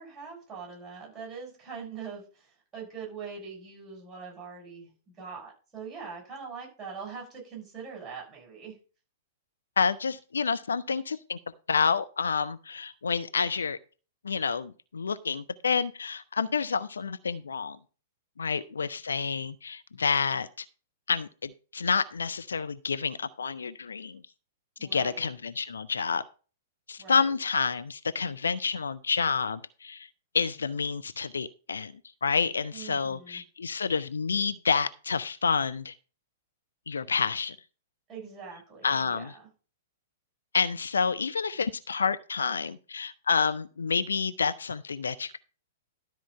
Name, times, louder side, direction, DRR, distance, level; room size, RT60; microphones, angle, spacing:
voice 1, 0.0-4.9 5.2-8.8 18.6-18.7 24.8-25.3 27.0-27.3 32.7-33.4 38.1-39.5, right 5 dB, 10° right, -1 dB, 6.6 m, -42 dB
voice 2, 9.8-11.4 11.7-13.8 14.2-17.8 18.4-20.7 21.1-24.2 24.8-26.2 26.9-30.1 30.3-31.9 32.2-35.9 36.9-37.6 38.8-39.3 40.5-45.4, left 5 dB, 70° left, 12 dB, 0.5 m, -29 dB
12.5 x 4.5 x 5.6 m, 0.36 s
figure-of-eight pair, 105°, 0 cm